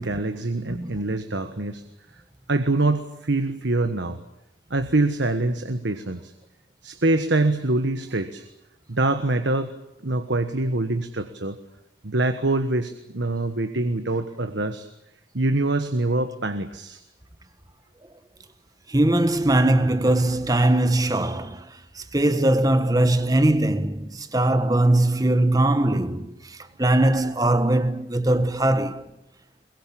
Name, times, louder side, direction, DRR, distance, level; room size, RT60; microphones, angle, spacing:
voice 1, 0.0-1.8 2.5-4.2 4.7-6.3 6.8-8.4 8.9-9.7 10.0-11.6 12.0-14.9 15.3-17.0, right 2 dB, 70° right, 1.3 m, -24 dB
voice 2, 0.7-1.0 18.9-29.1, right 1 dB, 20° right, 1.3 m, -21 dB
22.5 x 22.0 x 8.6 m
head